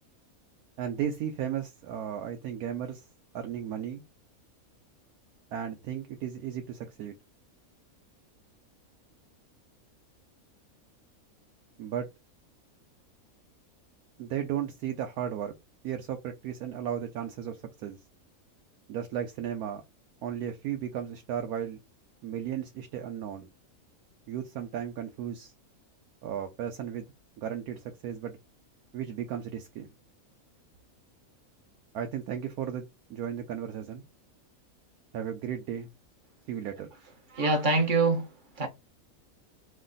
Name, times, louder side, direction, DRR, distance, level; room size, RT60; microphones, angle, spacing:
voice 1, 0.8-3.0 3.3-4.0 5.5-7.2 11.8-12.1 14.2-15.5 15.8-18.0 18.9-19.8 20.2-21.8 22.2-23.5 24.3-25.5 26.2-27.1 27.4-28.4 28.9-29.9 31.9-34.0 35.1-35.9 36.5-36.9, right 9 dB, 90° right, 1.1 m, -35 dB
voice 2, 37.3-38.7, right 3 dB, 45° right, 0.8 m, -25 dB
3.2 x 2.2 x 3.7 m
omnidirectional pair, 1.5 m